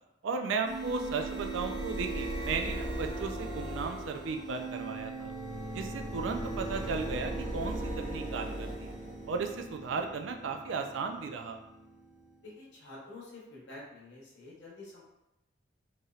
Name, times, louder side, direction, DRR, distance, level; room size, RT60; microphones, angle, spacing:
voice 1, 0.2-5.3 5.7-8.9 9.3-11.6, right 4 dB, 75° right, 4 dB, 0.3 m, -35 dB
sound 1, 0.6-12.2, right 2 dB, 40° right, 0.7 m, -38 dB
voice 2, 12.4-15.0, left 2 dB, 65° left, -5 dB, 0.9 m, -48 dB
3.1 x 2.7 x 2.3 m, 0.89 s
head